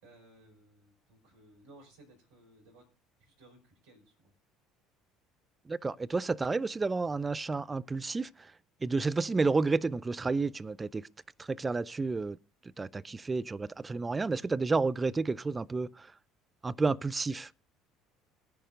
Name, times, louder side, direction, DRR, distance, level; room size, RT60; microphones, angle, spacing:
voice 1, 0.0-2.9 3.2-4.3, right 1 dB, 65° right, 5.4 m, -59 dB
voice 2, 5.7-8.5 8.8-11.1 11.4-12.4 12.8-16.1 16.6-17.5, right 3 dB, 20° right, 0.5 m, -31 dB
21.5 x 10.5 x 2.5 m
figure-of-eight pair, 60°, 0 cm